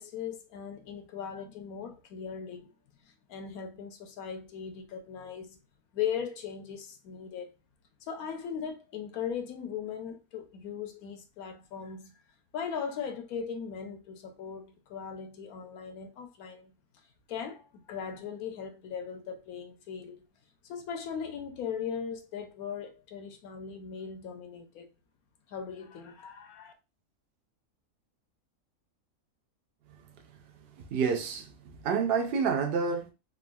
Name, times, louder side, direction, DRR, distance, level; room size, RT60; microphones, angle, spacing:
voice 1, 0.0-2.7 3.0-5.6 5.9-7.5 8.0-12.2 12.5-16.7 17.3-20.2 20.6-24.9 25.5-26.7, left 7 dB, 85° left, 1.1 m, -38 dB
voice 2, 30.8-31.5 31.8-33.1, right 5 dB, 70° right, 0.5 m, -28 dB
3.5 x 2.2 x 2.2 m
omnidirectional pair, 1.5 m